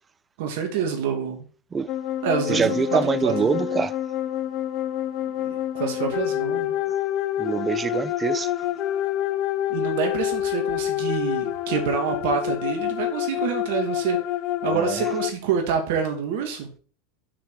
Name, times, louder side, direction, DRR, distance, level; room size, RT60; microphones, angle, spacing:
voice 1, 0.4-1.5 2.2-3.6 5.4-6.8 9.7-14.2 14.6-16.7, right 7 dB, 65° right, 2.4 m, -27 dB
sound 1, 1.9-15.3, left 12 dB, 50° left, 0.8 m, -27 dB
voice 2, 2.5-3.9 7.4-8.5 14.7-15.0, right 5 dB, 20° right, 0.5 m, -24 dB
6.4 x 5.9 x 4.8 m
hypercardioid pair, 95°, 0 cm